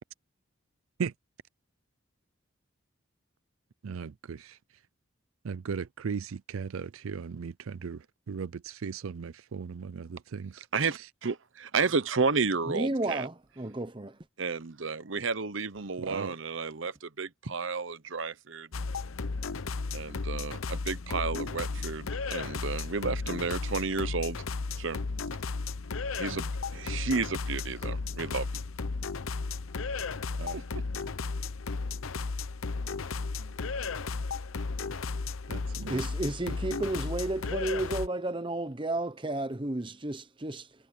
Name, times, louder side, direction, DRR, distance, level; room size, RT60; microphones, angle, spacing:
voice 1, 3.8-4.6 5.4-10.7 10.9-11.1 16.0-16.3 26.3-26.4 30.4-30.6 33.4-33.5 35.5-36.1, right 6 dB, 85° right, 0.5 m, -37 dB
voice 2, 10.7-13.3 14.4-18.7 19.9-24.4 24.8-25.0 26.2-28.6 30.5-30.6, right 4 dB, 70° right, 0.9 m, -32 dB
voice 3, 12.7-14.1 35.9-40.6, right 2 dB, 25° right, 1.0 m, -32 dB
sound 1, 18.7-38.1, left 4 dB, 85° left, 0.8 m, -34 dB
head